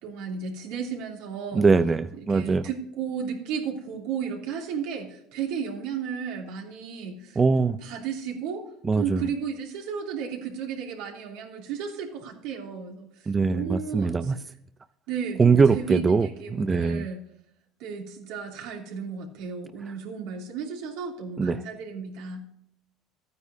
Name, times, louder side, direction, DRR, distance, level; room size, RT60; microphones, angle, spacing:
voice 1, 0.0-1.7 2.2-8.7 8.9-14.4 15.1-17.2 17.8-22.4, right 7 dB, 80° right, 0 dB, 2.9 m, -34 dB
voice 2, 1.5-2.7 7.4-7.8 8.8-9.2 13.3-14.4 15.4-17.1 21.4-21.6, right 4 dB, 20° right, 11 dB, 0.4 m, -22 dB
13.5 x 9.5 x 2.7 m, 0.74 s
cardioid pair, 125°, 0 cm